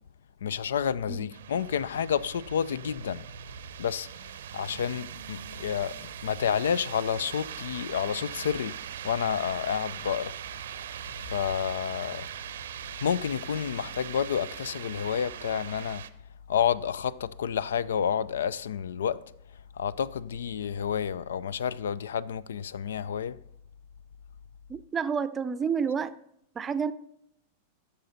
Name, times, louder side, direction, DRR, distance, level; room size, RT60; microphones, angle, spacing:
voice 1, 0.4-3.2 3.8-8.8 9.0-10.4 11.3-12.3 13.0-16.1 16.5-19.3 19.7-23.4, left 8 dB, 70° left, 0.3 m, -30 dB
sound 1, 1.3-16.1, right 10 dB, 65° right, 0.6 m, -41 dB
voice 2, 24.7-26.2 26.6-26.9, right 6 dB, 20° right, 0.6 m, -29 dB
16.0 x 6.8 x 4.1 m
figure-of-eight pair, 90°, 0 cm